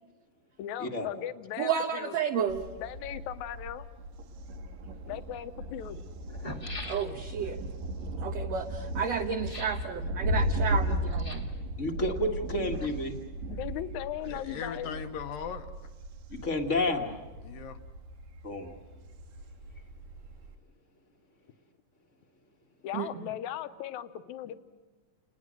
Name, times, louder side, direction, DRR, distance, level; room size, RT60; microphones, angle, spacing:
voice 1, 0.6-2.1 2.8-3.9 5.1-6.0 13.5-15.0 22.8-24.5, left 12 dB, 70° left, 10 dB, 2.1 m, -38 dB
voice 2, 1.6-2.7 6.8-7.7 8.2-11.5 22.9-23.3, right 7 dB, 65° right, 3 dB, 1.8 m, -32 dB
Thunder, 2.5-20.6, equal, 80° right, 3.0 m, -36 dB
sound 1, 4.9-5.0 5.9-6.0 6.2-7.4 9.4-9.9 11.1-11.6 12.5-13.3 13.5-13.6, left 2 dB, 20° left, 0.9 m, -43 dB
voice 3, 11.8-13.1 16.3-17.1 18.4-18.8, left 1 dB, 40° left, 3 dB, 1.0 m, -30 dB
voice 4, 14.2-15.7 17.4-17.8 24.4-24.5, left 8 dB, 90° left, 7 dB, 2.9 m, -39 dB
29.5 x 21.0 x 6.3 m, 1.3 s
omnidirectional pair, 3.9 m